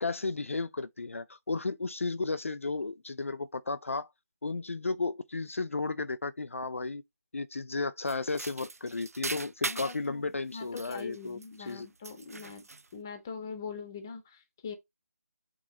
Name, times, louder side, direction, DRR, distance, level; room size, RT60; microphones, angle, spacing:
voice 1, 0.0-4.1 4.4-7.0 7.3-11.9, left 3 dB, 50° left, 0.5 m, -34 dB
sound 1, 8.1-10.1 10.6-11.7 12.0-12.9, right 3 dB, 60° right, 0.5 m, -39 dB
voice 2, 9.6-12.6 12.9-14.7, left 5 dB, 10° left, 0.7 m, -42 dB
7.4 x 3.6 x 4.1 m
figure-of-eight pair, 175°, 9 cm